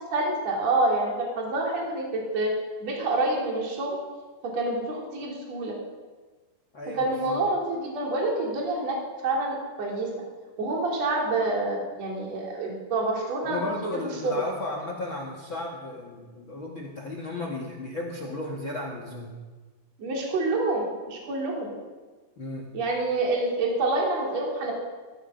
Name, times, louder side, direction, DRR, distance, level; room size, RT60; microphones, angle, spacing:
voice 1, 0.1-2.5 2.8-4.0 4.5-5.7 7.0-9.0 9.2-10.1 10.6-14.3 20.0-21.7 22.7-24.7, right 2 dB, 40° right, -2 dB, 4.2 m, -27 dB
voice 2, 6.7-7.4 13.4-19.4 22.4-22.7, left 2 dB, 65° left, 1 dB, 1.2 m, -34 dB
17.5 x 14.0 x 5.8 m, 1.3 s
omnidirectional pair, 5.3 m